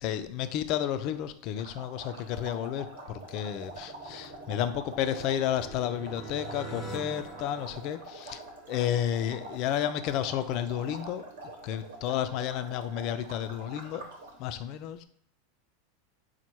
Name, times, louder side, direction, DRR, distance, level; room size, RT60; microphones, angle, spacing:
voice 1, 0.0-8.4 8.7-11.2 11.6-14.1 14.4-15.0, left 10 dB, 50° left, 11 dB, 0.4 m, -31 dB
sound 1, 1.6-14.4, right 2 dB, 80° right, 1.1 m, -45 dB
sound 2, 2.9-8.7, right 2 dB, ahead, 0.8 m, -45 dB
4.2 x 2.1 x 4.5 m, 0.65 s
hypercardioid pair, 110°, 0 cm